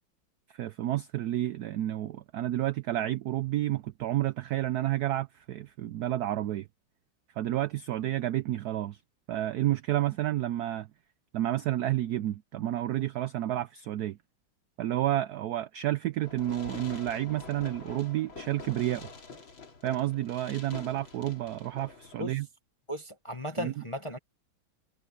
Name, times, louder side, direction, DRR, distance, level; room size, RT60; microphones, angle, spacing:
voice 1, 0.5-6.7 7.4-9.0 9.3-10.9 11.3-14.2 14.8-19.1 19.8-22.5 23.6-23.7, right 14 dB, 75° right, 0.8 m, -30 dB
Fireworks, 16.2-22.2, left 4 dB, 70° left, 4.0 m, -46 dB
voice 2, 22.9-24.2, equal, 25° left, 0.8 m, -36 dB
omnidirectional pair, 2.2 m